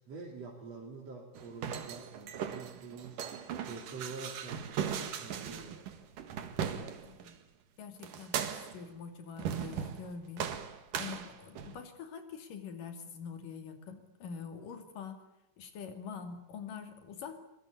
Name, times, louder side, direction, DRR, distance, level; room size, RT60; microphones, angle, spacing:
voice 1, 0.0-6.1, right 4 dB, 50° right, -1 dB, 4.1 m, -47 dB
sound 1, 1.4-7.3 8.0-8.9 9.4-10.1 10.4-11.8, right 8 dB, 80° right, 3.4 m, -38 dB
voice 2, 7.0-7.4 7.8-10.5 11.0-15.2 15.6-17.4, left 6 dB, 90° left, 7 dB, 4.4 m, -45 dB
24.5 x 22.0 x 8.5 m, 0.86 s
omnidirectional pair, 3.7 m